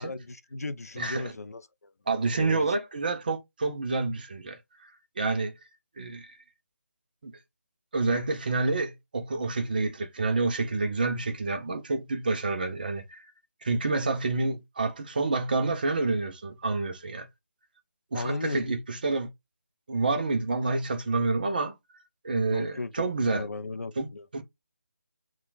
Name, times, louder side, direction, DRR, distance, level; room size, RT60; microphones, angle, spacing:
voice 1, 0.0-1.9 2.4-2.7 18.1-18.7 22.5-24.3, left 2 dB, 70° left, 0.4 m, -36 dB
voice 2, 1.0-1.3 2.1-4.9 5.2-5.5 6.0-6.4 7.2-7.3 7.9-13.3 13.6-17.3 18.1-19.3 19.9-21.7 22.2-23.5 24.0-24.4, right 3 dB, 35° right, 0.5 m, -28 dB
2.9 x 2.2 x 2.4 m
figure-of-eight pair, 155°, 9 cm